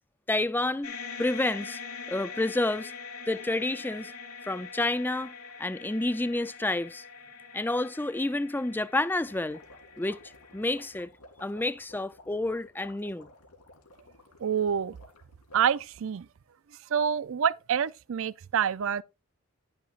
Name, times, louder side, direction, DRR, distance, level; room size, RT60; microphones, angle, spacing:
voice 1, 0.3-1.8 2.1-2.9 3.3-4.1 4.5-5.3 5.6-7.0 7.5-9.6 10.0-10.2 10.5-11.1 11.4-13.3, left 2 dB, 10° left, 0.4 m, -29 dB
sound 1, 0.8-11.1, left 5 dB, 65° left, 2.8 m, -44 dB
sound 2, 9.2-15.8, left 2 dB, 90° left, 2.6 m, -54 dB
voice 2, 14.4-15.0 15.5-16.3 16.9-19.0, right 8 dB, 60° right, 0.4 m, -27 dB
10.5 x 10.5 x 2.4 m
head